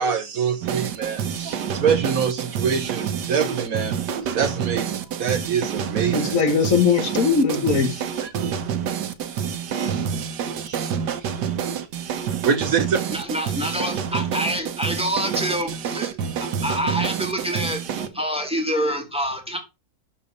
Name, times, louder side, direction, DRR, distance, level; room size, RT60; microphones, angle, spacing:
voice 1, 0.0-4.0 4.3-6.4 8.2-8.3 10.6-11.5 12.4-13.0, right 6 dB, 60° right, 1.3 m, -25 dB
sound 1, 0.6-18.1, right 8 dB, 90° right, 1.5 m, -28 dB
voice 2, 6.1-8.0, left 5 dB, 55° left, 1.7 m, -20 dB
voice 3, 13.1-19.6, equal, 5° right, 2.1 m, -27 dB
11.5 x 4.2 x 5.2 m
omnidirectional pair, 1.7 m